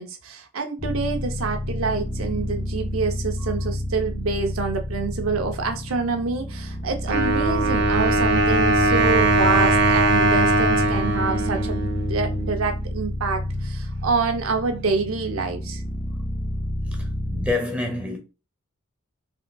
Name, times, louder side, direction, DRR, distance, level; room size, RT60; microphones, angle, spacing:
voice 1, 0.0-15.8, right 4 dB, 85° right, 0.6 m, -27 dB
sound 1, 0.8-17.5, left 1 dB, 50° left, 1.7 m, -29 dB
Wind instrument woodwind instrument, 7.1-12.7, right 2 dB, 55° right, 0.8 m, -20 dB
voice 2, 17.0-18.2, left 2 dB, 5° right, 0.7 m, -27 dB
5.1 x 3.6 x 2.2 m
head